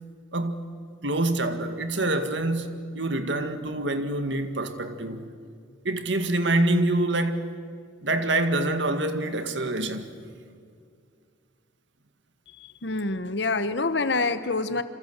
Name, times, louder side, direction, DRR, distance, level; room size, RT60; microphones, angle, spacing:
voice 1, 0.3-0.6 1.0-2.7 2.9-5.3 5.8-7.5 8.0-10.1, right 2 dB, 65° right, 2.0 m, -26 dB
voice 2, 12.6-14.8, left 3 dB, 60° left, 1.1 m, -26 dB
27.5 x 26.5 x 8.2 m
head